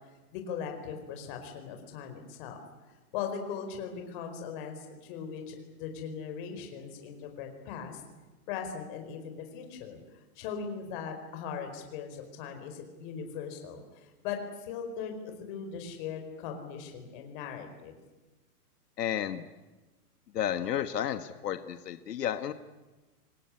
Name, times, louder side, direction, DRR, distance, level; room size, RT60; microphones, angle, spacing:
voice 1, 0.3-2.6 3.1-8.0 8.5-10.0 10.4-17.9, left 7 dB, 30° left, 4 dB, 4.7 m, -39 dB
voice 2, 19.0-19.4 20.3-22.5, left 10 dB, 90° left, 9 dB, 1.6 m, -32 dB
25.5 x 19.5 x 9.8 m, 1.2 s
hypercardioid pair, 170°, 47 cm